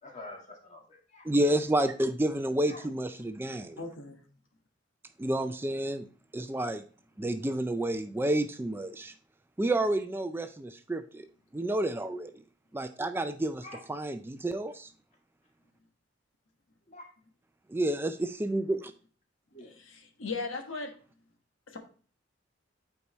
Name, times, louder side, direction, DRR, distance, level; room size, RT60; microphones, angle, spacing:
voice 1, 0.0-1.3 2.7-2.9 13.6-13.8 16.9-17.1 19.5-19.7, left 2 dB, 40° left, 0 dB, 1.8 m, -47 dB
voice 2, 1.2-3.8 5.2-6.1 6.3-6.8 7.2-9.1 9.6-11.3 11.5-12.3 12.7-13.6 13.9-14.9 17.7-18.9, right 1 dB, 10° right, 9 dB, 0.3 m, -30 dB
voice 3, 3.6-4.2 19.7-20.9 21.7-21.8, left 3 dB, 90° left, 4 dB, 1.2 m, -38 dB
8.2 x 4.7 x 2.9 m, 0.42 s
head